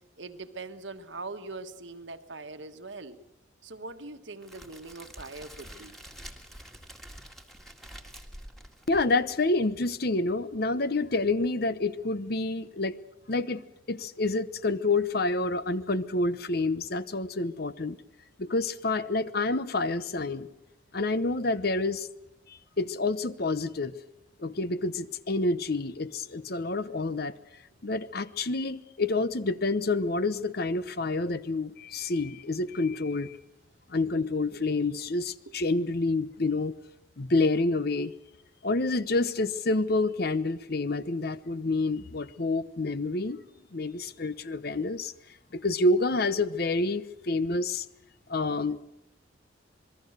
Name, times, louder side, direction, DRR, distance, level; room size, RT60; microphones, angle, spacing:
voice 1, 0.2-3.2 3.6-6.0 35.5-35.6, right 3 dB, 70° right, 8 dB, 1.5 m, -42 dB
Crackle, 4.4-9.5, equal, ahead, 1.9 m, -47 dB
voice 2, 8.9-13.0 13.3-13.6 13.9-18.0 18.4-20.5 20.9-22.1 22.5-23.9 24.4-27.3 27.8-33.4 33.9-36.8 37.2-38.1 38.6-43.4 43.7-45.1 45.5-47.8 48.3-48.8, left 2 dB, 50° left, 14 dB, 0.9 m, -28 dB
27.0 x 21.0 x 6.7 m, 0.86 s
head